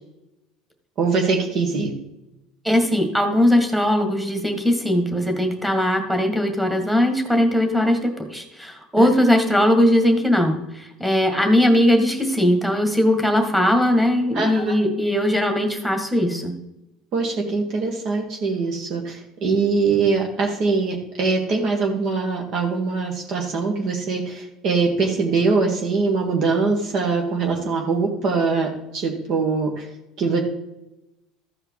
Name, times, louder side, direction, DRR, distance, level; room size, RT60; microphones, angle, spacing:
voice 1, 1.0-1.9 9.0-9.1 14.3-14.7 17.1-29.8 30.2-30.4, right 4 dB, 50° right, 1 dB, 1.7 m, -22 dB
voice 2, 2.6-16.5, left 1 dB, 5° right, 4 dB, 1.9 m, -19 dB
14.0 x 4.9 x 4.7 m, 0.92 s
supercardioid pair, 120°, 0 cm